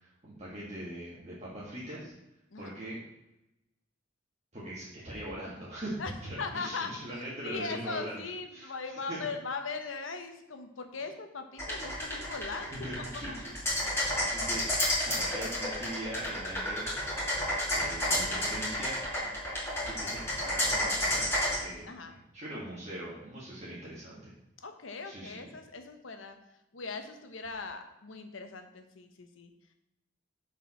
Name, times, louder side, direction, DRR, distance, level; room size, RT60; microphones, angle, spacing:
voice 1, 0.0-2.1 2.6-3.0 4.5-6.0 6.2-8.2 8.5-9.3 12.6-13.5 13.8-14.7 15.0-16.9 17.7-19.3 19.9-24.3 25.0-25.5, right 1 dB, 35° right, -7 dB, 1.8 m, -41 dB
voice 2, 6.4-6.9 7.4-13.4 13.8-14.4 21.9-22.1 24.6-26.4 26.7-29.5, left 4 dB, 80° left, 6 dB, 1.0 m, -40 dB
sound 1, 11.6-21.6, left 1 dB, 15° left, 2.4 m, -31 dB
7.1 x 4.7 x 5.7 m, 0.89 s
head